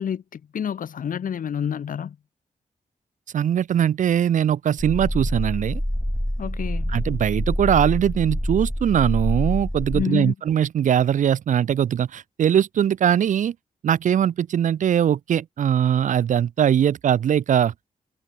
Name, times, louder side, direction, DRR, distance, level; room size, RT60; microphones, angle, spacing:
voice 1, 0.0-2.2 6.4-7.0 9.9-10.3, left 8 dB, 70° left, 1.1 m, -28 dB
voice 2, 3.3-5.8 6.9-13.5 13.8-17.7, right 9 dB, 60° right, 0.4 m, -21 dB
sound 1, 4.8-10.0, equal, ahead, 0.4 m, -26 dB
wide cardioid pair, 105°, 15 cm